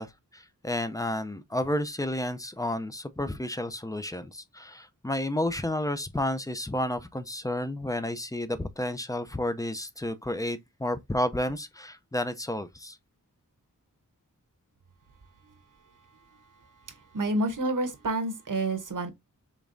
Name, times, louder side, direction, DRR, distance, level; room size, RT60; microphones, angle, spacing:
voice 1, 0.0-13.0, left 1 dB, 10° left, 0.5 m, -31 dB
voice 2, 16.9-19.1, right 2 dB, 65° right, 1.0 m, -29 dB
5.2 x 3.5 x 2.6 m
wide cardioid pair, 85°, 34 cm